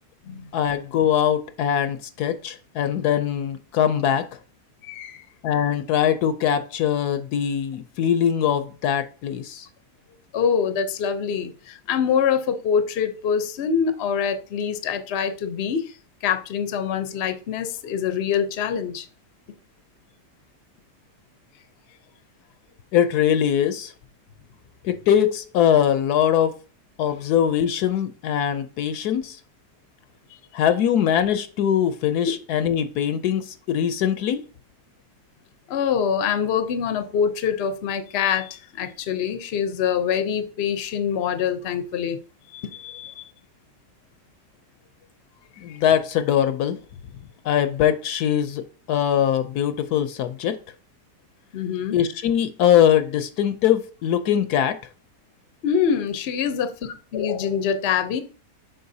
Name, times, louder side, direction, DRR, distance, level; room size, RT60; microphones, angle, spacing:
voice 1, 0.5-4.3 5.4-9.7 22.9-23.9 24.8-26.5 27.0-29.4 30.5-34.4 45.6-46.8 47.4-48.6 48.9-50.6 51.9-54.8, left 9 dB, 70° left, 11 dB, 1.1 m, -22 dB
voice 2, 4.8-5.2 10.3-15.9 16.2-19.1 32.2-32.3 35.7-42.2 42.5-43.2 45.7-45.8 51.5-52.0 55.6-58.2, left 7 dB, 55° left, 9 dB, 0.8 m, -25 dB
7.8 x 5.2 x 2.7 m, 0.37 s
omnidirectional pair, 1.8 m